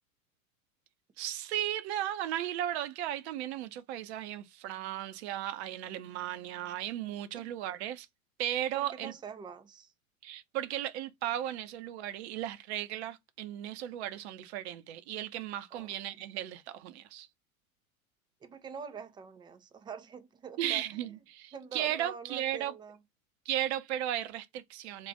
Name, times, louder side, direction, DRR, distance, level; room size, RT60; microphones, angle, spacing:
voice 1, 1.2-8.1 8.4-9.1 10.2-17.3 20.6-22.7 23.4-25.1, right 12 dB, 50° right, 0.8 m, -35 dB
voice 2, 8.7-9.9 15.7-15.9 18.4-21.1 21.5-23.0, right 6 dB, 10° right, 0.4 m, -45 dB
3.9 x 2.4 x 3.9 m
figure-of-eight pair, 85°, 42 cm